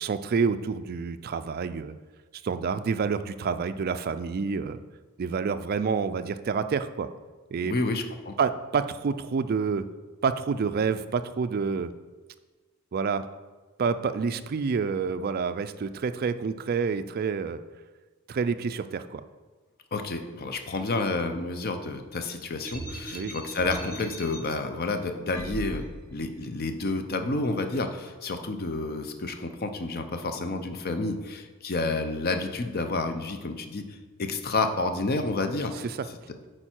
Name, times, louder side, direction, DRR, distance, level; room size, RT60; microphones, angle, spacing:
voice 1, 0.0-1.9 2.4-4.8 5.2-7.1 7.5-7.7 8.4-9.8 10.2-11.9 12.9-13.2 13.8-17.6 18.3-19.2 23.1-23.3 35.8-36.0, right 5 dB, 45° right, 11 dB, 0.3 m, -28 dB
voice 2, 7.6-8.3 19.9-33.8 34.2-35.8, left 3 dB, 45° left, 7 dB, 0.6 m, -30 dB
sound 1, 22.6-24.4 25.3-26.2, equal, 25° left, 2.0 m, -38 dB
8.9 x 4.5 x 4.4 m, 1.3 s
head